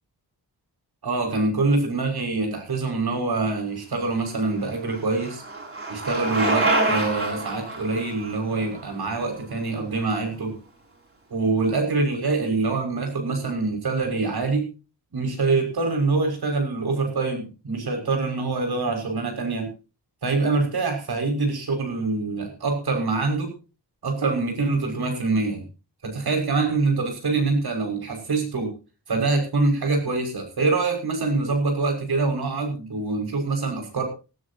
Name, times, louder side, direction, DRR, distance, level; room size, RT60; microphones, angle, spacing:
voice 1, 1.0-5.4 5.9-10.5 11.3-14.7 15.1-19.7 20.2-23.5 24.0-25.7 26.0-28.7 29.1-34.0, right 3 dB, 65° right, 4 dB, 6.1 m, -25 dB
Bicycle, 4.1-10.0, right 2 dB, 35° right, 6.5 m, -28 dB
18.5 x 17.0 x 2.9 m, 0.33 s
wide cardioid pair, 155°, 41 cm